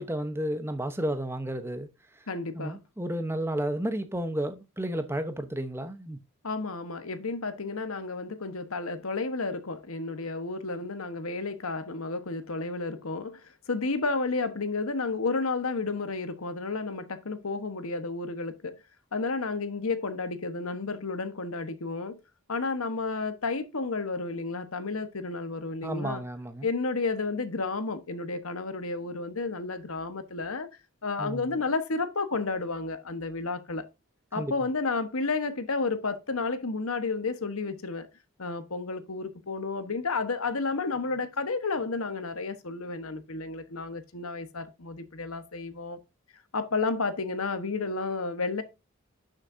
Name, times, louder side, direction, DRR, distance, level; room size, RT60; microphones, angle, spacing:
voice 1, 0.0-1.9 2.1-2.3 2.5-6.2 25.8-26.7 31.2-31.6 34.3-34.5, right 1 dB, 10° right, 0.9 m, -32 dB
voice 2, 2.3-2.8 6.4-18.8 19.1-22.2 22.5-26.2 26.6-30.7 31.0-33.9 34.3-38.1 38.4-46.0 46.5-48.6, left 3 dB, 85° left, 1.2 m, -31 dB
11.5 x 6.5 x 2.7 m
head